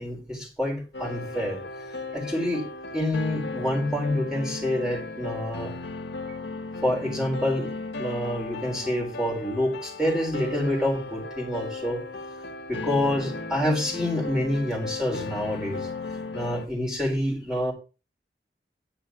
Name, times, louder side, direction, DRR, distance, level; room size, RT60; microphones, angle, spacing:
voice 1, 0.0-1.6 2.1-2.7 2.9-5.7 6.8-7.7 8.0-12.0 12.7-15.9 16.3-17.7, left 1 dB, 5° right, -1 dB, 4.1 m, -27 dB
sound 1, 0.9-16.7, left 3 dB, 85° left, 1.7 m, -36 dB
11.0 x 5.6 x 6.2 m, 0.32 s
head